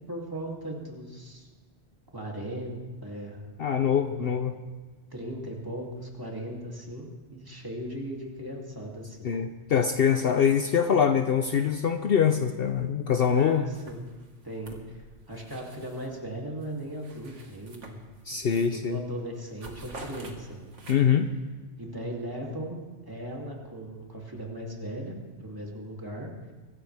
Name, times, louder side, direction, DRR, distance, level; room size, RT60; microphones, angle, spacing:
voice 1, 0.1-1.5 2.1-3.4 4.2-4.3 5.1-9.3 13.3-14.1 14.4-18.0 18.3-18.4 18.7-20.7 21.8-22.8 23.1-26.3, right 1 dB, 20° right, -2 dB, 2.8 m, -38 dB
voice 2, 3.6-4.6 9.2-13.7 18.3-19.0 20.9-21.3, left 7 dB, 60° left, 8 dB, 0.8 m, -24 dB
sound 1, 13.1-13.4 13.7-16.2 16.6-18.5 18.8-19.1 19.3-21.3, right 2 dB, 80° right, 2.1 m, -48 dB
23.5 x 15.5 x 3.5 m, 1.3 s
omnidirectional pair, 1.2 m